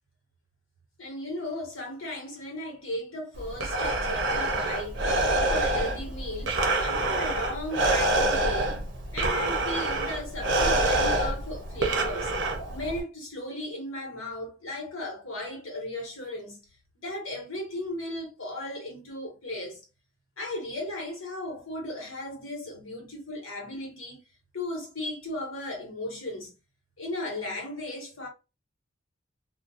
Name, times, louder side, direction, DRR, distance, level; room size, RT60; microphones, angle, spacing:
voice 1, 1.0-8.8 9.1-12.3 12.7-16.6 17.0-19.8 20.4-24.2 24.5-26.5 27.0-28.3, left 1 dB, 75° left, 1.2 m, -36 dB
Breathing, 3.4-13.0, right 2 dB, 60° right, 0.6 m, -26 dB
2.4 x 2.1 x 2.7 m
head